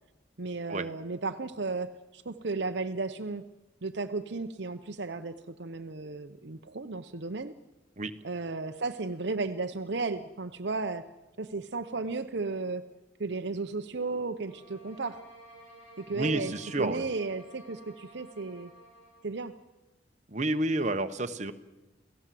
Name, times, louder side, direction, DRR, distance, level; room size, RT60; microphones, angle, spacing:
voice 1, 0.4-3.5 3.8-7.6 8.2-11.1 11.4-12.9 13.2-15.2 16.0-18.7 19.2-19.6, right 3 dB, 60° right, 8 dB, 0.8 m, -34 dB
sound 1, 14.4-19.3, right 1 dB, 70° left, 7.6 m, -53 dB
voice 2, 16.1-17.0 20.3-21.5, right 2 dB, 40° right, 7 dB, 1.2 m, -30 dB
28.5 x 17.0 x 7.7 m, 1.1 s
head